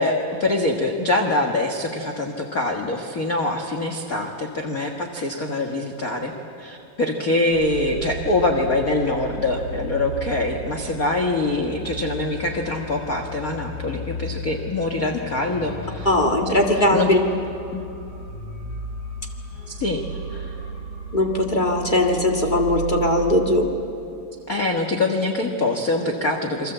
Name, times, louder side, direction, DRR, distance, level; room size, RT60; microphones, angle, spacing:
voice 1, 0.0-6.3 6.6-16.1 16.4-17.1 17.7-17.8 19.7-20.0 20.3-20.6 24.5-26.7, left 2 dB, 50° left, 2 dB, 1.0 m, -24 dB
sound 1, 7.5-23.5, right 1 dB, 70° left, 8.6 m, -34 dB
voice 2, 16.0-17.2 21.1-23.7, left 1 dB, 20° left, 1 dB, 1.3 m, -19 dB
28.5 x 23.0 x 8.0 m, 2.6 s
omnidirectional pair, 4.0 m